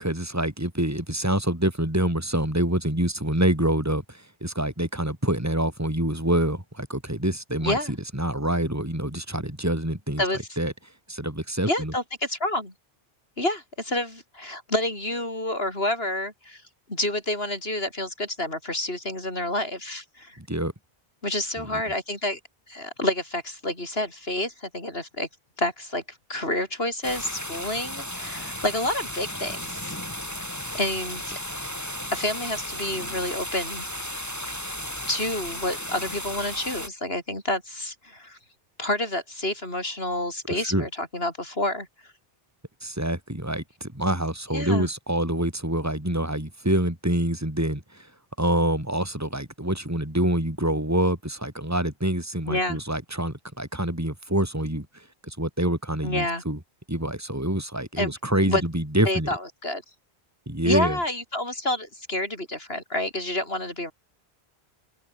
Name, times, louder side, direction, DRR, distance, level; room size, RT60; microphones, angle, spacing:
voice 1, 0.0-10.2 10.6-10.7 11.1-11.9 20.4-20.7 21.6-21.8 40.5-40.8 42.8-48.1 48.4-56.6 56.9-59.3 60.5-61.0, right 1 dB, 15° right, 4.6 m, -26 dB
voice 2, 7.6-7.9 10.2-10.4 11.7-12.7 13.4-16.6 16.9-20.4 21.2-22.4 22.7-25.3 25.6-30.0 30.5-31.4 32.1-33.8 35.1-38.4 38.8-41.9 44.5-44.9 52.5-52.8 56.0-56.4 58.0-58.1 58.4-58.6 59.1-59.8 60.6-63.9, left 1 dB, 70° left, 7.4 m, -29 dB
sound 1, 27.0-36.9, equal, 15° left, 7.0 m, -34 dB
open air
omnidirectional pair, 1.1 m